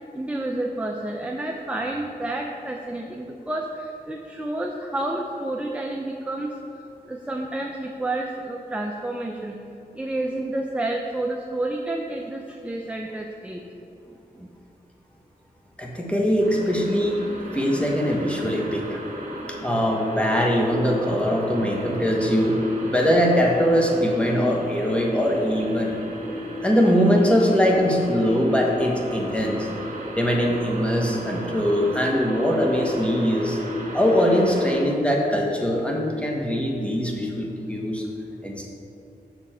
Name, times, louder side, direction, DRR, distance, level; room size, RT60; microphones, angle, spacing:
voice 1, 0.1-6.5 7.1-9.6 9.9-13.6 14.4-14.5, right 2 dB, 10° right, 1 dB, 0.5 m, -30 dB
voice 2, 15.8-17.2 17.5-19.0 19.5-26.0 26.6-29.7 30.2-33.6 33.9-38.0 38.4-38.7, equal, 5° left, -1 dB, 1.2 m, -22 dB
sound 1, 16.4-34.8, right 1 dB, 50° right, 1.6 m, -35 dB
6.9 x 6.1 x 4.3 m, 2.8 s
wide cardioid pair, 75°, 16 cm